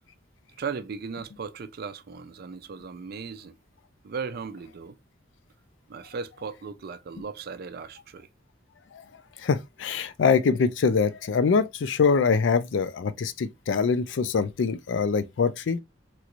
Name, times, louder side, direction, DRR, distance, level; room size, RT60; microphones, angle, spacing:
voice 1, 0.6-3.6 4.0-5.0 5.9-8.3, right 5 dB, 55° right, 0.4 m, -37 dB
voice 2, 9.4-15.8, left 5 dB, 75° left, 0.4 m, -24 dB
3.0 x 2.5 x 2.9 m
head